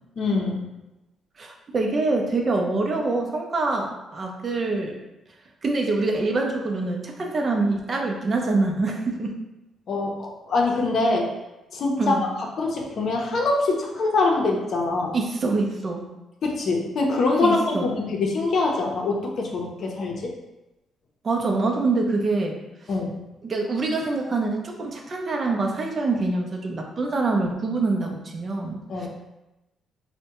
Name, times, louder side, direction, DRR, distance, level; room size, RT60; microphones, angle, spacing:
voice 1, 0.2-0.6 9.9-11.3 11.7-12.3 12.6-15.2 16.4-20.3 22.9-23.2 28.9-29.1, left 3 dB, 60° left, 0 dB, 0.6 m, -24 dB
voice 2, 1.4-5.0 5.6-9.4 12.0-12.2 15.1-16.0 17.4-17.9 21.2-22.6 23.4-29.1, right 3 dB, 40° right, 1 dB, 0.5 m, -25 dB
3.3 x 2.1 x 2.9 m, 0.98 s
cardioid pair, 90°, 0 cm